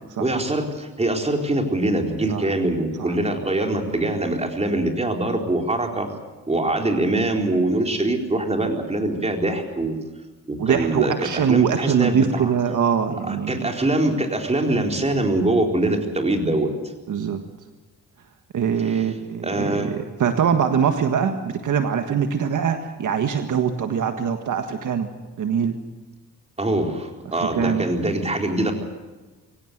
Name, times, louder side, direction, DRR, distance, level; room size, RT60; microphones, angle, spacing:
voice 1, 0.2-6.1 6.5-10.0 10.5-12.5 13.3-16.7 18.8-19.1 19.4-20.0 26.6-28.7, right 2 dB, 20° right, 3 dB, 4.1 m, -23 dB
voice 2, 10.6-13.6 17.1-17.4 18.5-25.1 25.4-25.7 27.5-27.9, right 7 dB, 65° right, 7 dB, 1.7 m, -22 dB
23.5 x 17.5 x 8.0 m, 1.2 s
cardioid pair, 90°, 34 cm